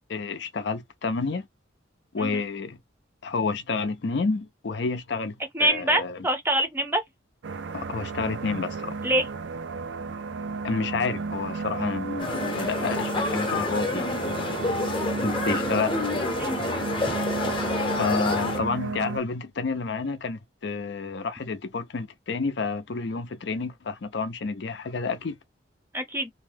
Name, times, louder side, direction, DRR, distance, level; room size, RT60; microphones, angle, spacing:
voice 1, 0.1-1.5 2.1-2.8 3.2-6.2 7.7-9.0 10.6-14.8 15.2-16.0 18.0-25.4, left 4 dB, 65° left, 0.5 m, -30 dB
voice 2, 5.5-7.0 9.0-9.3 16.4-16.6 25.9-26.3, right 1 dB, 10° right, 0.6 m, -25 dB
sound 1, 7.4-19.2, right 4 dB, 70° right, 0.4 m, -33 dB
sound 2, 12.2-18.6, left 3 dB, 25° left, 0.7 m, -28 dB
2.7 x 2.2 x 3.3 m
head